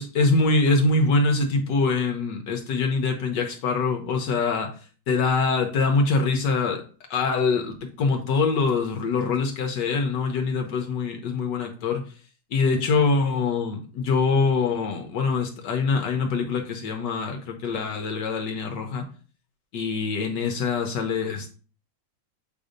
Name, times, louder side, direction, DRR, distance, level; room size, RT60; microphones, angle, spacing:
voice 1, 0.0-4.7 5.1-6.8 7.1-12.0 12.5-19.0 19.7-21.5, left 4 dB, 70° left, 4 dB, 1.4 m, -24 dB
7.6 x 2.7 x 5.0 m, 0.39 s
omnidirectional pair, 2.0 m